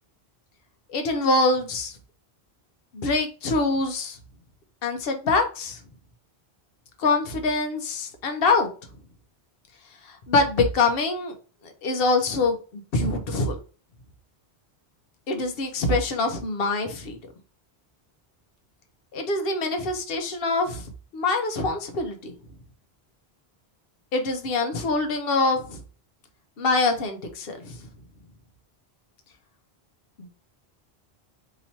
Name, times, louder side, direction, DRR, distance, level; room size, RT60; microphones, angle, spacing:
voice 1, 0.9-2.0 2.9-4.2 4.8-5.8 7.0-8.7 10.0-11.3 11.6-13.6 15.3-17.2 19.1-22.3 24.1-25.8 26.6-27.9 30.2-30.3, left 3 dB, 70° left, 5 dB, 0.9 m, -25 dB
3.0 x 2.8 x 4.3 m, 0.37 s
omnidirectional pair, 1.1 m